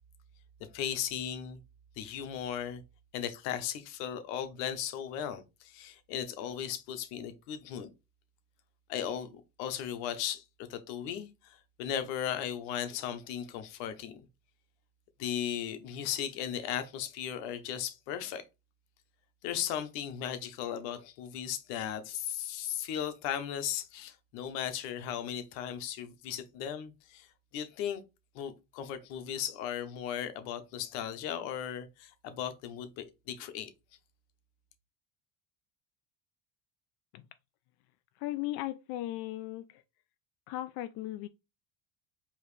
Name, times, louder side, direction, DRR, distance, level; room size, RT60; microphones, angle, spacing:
voice 1, 0.6-1.6 2.0-2.8 3.1-7.9 8.9-10.4 10.7-14.2 15.2-18.4 19.4-27.3 27.5-28.0 28.3-33.7, left 9 dB, 80° left, 1.0 m, -36 dB
voice 2, 38.2-39.8 40.5-41.3, left 15 dB, 60° left, 0.5 m, -37 dB
4.8 x 3.1 x 3.2 m
supercardioid pair, 100°, 47 cm